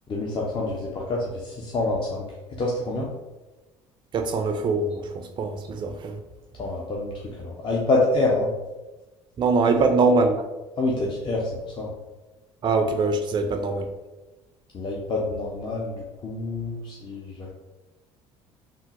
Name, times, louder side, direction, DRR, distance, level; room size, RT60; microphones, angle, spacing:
voice 1, 0.1-2.2 2.6-3.1 6.6-8.5 10.8-11.5 11.8-11.9 14.7-17.5, left 2 dB, 35° left, -3 dB, 0.6 m, -27 dB
voice 2, 4.1-6.2 9.4-10.4 12.6-13.9, right 3 dB, 30° right, 6 dB, 0.4 m, -23 dB
3.4 x 2.0 x 2.8 m, 1.1 s
hypercardioid pair, 65°, 15 cm